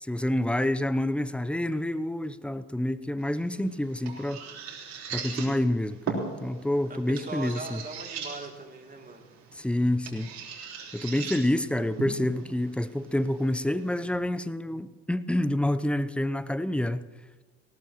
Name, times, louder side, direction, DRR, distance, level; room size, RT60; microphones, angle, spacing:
voice 1, 0.0-4.4 5.1-7.8 9.5-10.3 10.9-17.1, left 1 dB, 5° left, 15 dB, 0.7 m, -28 dB
sound 1, 3.2-14.2, right 5 dB, 55° right, 4.3 m, -40 dB
voice 2, 6.9-9.3, right 3 dB, 25° right, 2 dB, 2.9 m, -40 dB
19.5 x 18.0 x 3.1 m, 1.3 s
hypercardioid pair, 60°, 32 cm